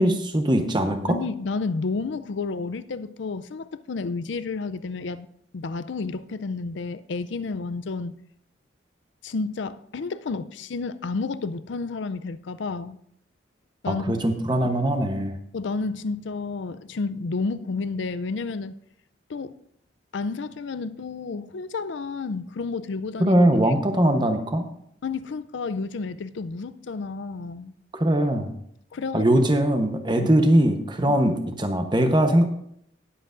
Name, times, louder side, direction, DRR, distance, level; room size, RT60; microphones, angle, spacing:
voice 1, 0.0-1.2 13.9-15.3 23.2-24.7 27.9-28.5 29.1-32.4, right 1 dB, 25° right, 0.9 m, -21 dB
voice 2, 1.1-5.3 5.5-8.2 9.2-13.0 13.8-14.2 15.5-18.7 19.3-19.6 20.1-23.4 25.0-27.7 28.9-29.3 30.2-30.3 31.1-31.2, left 4 dB, 70° left, 0.5 m, -31 dB
19.5 x 7.8 x 2.6 m
head